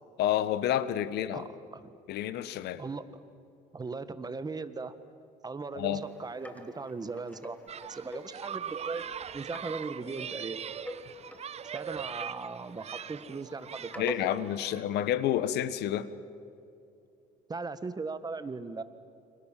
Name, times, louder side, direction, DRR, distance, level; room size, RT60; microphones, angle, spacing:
voice 1, 0.2-1.5 2.1-2.8 5.8-6.0 14.0-16.1, left 11 dB, 80° left, 14 dB, 1.3 m, -29 dB
voice 2, 1.3-1.9 2.8-3.1 3.7-5.0 5.4-7.6 7.9-10.7 11.7-14.1 17.5-18.8, right 4 dB, 25° right, 12 dB, 1.6 m, -38 dB
sound 1, 5.9-14.6, left 1 dB, 10° left, 2.6 m, -46 dB
sound 2, 7.7-14.8, right 8 dB, 40° right, 0.8 m, -41 dB
29.5 x 26.0 x 7.6 m, 2.7 s
cardioid pair, 110°, 17 cm